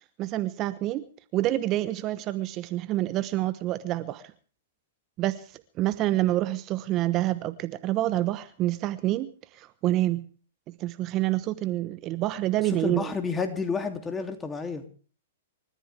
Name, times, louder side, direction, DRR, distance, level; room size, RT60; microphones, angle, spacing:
voice 1, 0.2-1.0 1.3-4.2 5.2-5.5 5.8-10.2 10.8-13.1, right 15 dB, 35° right, 1.0 m, -27 dB
voice 2, 12.8-14.8, left 4 dB, 15° left, 2.8 m, -30 dB
28.0 x 14.5 x 3.4 m
hypercardioid pair, 120°, 0 cm